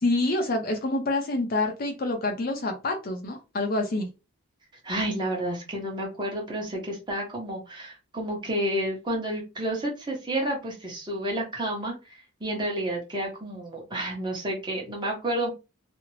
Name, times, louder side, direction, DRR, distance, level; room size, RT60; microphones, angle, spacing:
voice 1, 0.0-4.1, left 2 dB, 40° left, 4 dB, 0.5 m, -27 dB
voice 2, 4.8-15.5, right 1 dB, 20° right, -1 dB, 0.8 m, -30 dB
2.5 x 2.0 x 3.1 m, 0.28 s
head